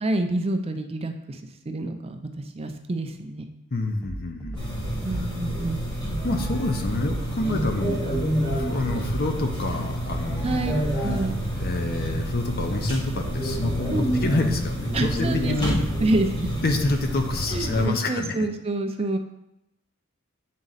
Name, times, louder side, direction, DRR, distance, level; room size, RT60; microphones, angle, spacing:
voice 1, 0.0-1.4 1.7-3.5 5.0-5.9 10.4-10.7 11.0-11.4 13.9-14.1 14.9-16.5 17.5-19.2, right 2 dB, 30° right, 6 dB, 0.4 m, -28 dB
voice 2, 3.7-4.8 6.2-8.2 8.5-11.2 11.5-18.5, left 2 dB, 45° left, 4 dB, 0.7 m, -28 dB
sound 1, 4.0-5.3 6.0-12.0, right 1 dB, 5° left, 0.9 m, -37 dB
sound 2, 4.6-17.8, equal, 20° left, 1.6 m, -28 dB
7.4 x 4.0 x 4.0 m, 0.85 s
head